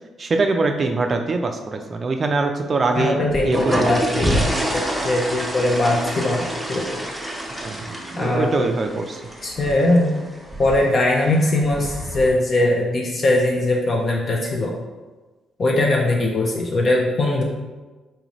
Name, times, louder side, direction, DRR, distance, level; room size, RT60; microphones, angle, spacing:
voice 1, 0.2-3.2 3.4-4.0 7.6-9.2, right 3 dB, 40° right, 5 dB, 0.3 m, -23 dB
voice 2, 3.0-6.9 8.2-8.7 9.4-10.1 10.6-14.8 15.6-17.4, left 2 dB, 45° left, -1 dB, 0.5 m, -20 dB
sound 1, 3.2-12.3, right 1 dB, ahead, 0.6 m, -28 dB
4.1 x 2.5 x 3.0 m, 1.2 s
cardioid pair, 90°, 0 cm